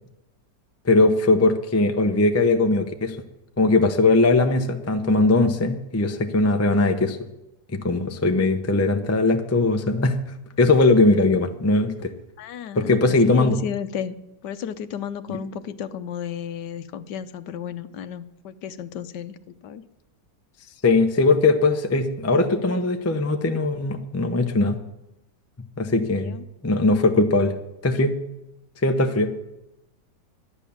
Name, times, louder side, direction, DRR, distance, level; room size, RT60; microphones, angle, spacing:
voice 1, 0.8-3.2 3.6-7.2 7.7-10.2 10.6-12.1 12.8-13.6 15.3-15.4 20.8-24.8 25.8-26.4 26.6-27.5 27.8-28.2 28.8-29.3, left 2 dB, 20° left, 6 dB, 0.3 m, -20 dB
voice 2, 12.4-14.2 14.4-19.4 19.6-19.8 26.2-26.4, left 8 dB, 75° left, 12 dB, 1.3 m, -33 dB
12.0 x 10.0 x 7.1 m, 0.92 s
omnidirectional pair, 1.9 m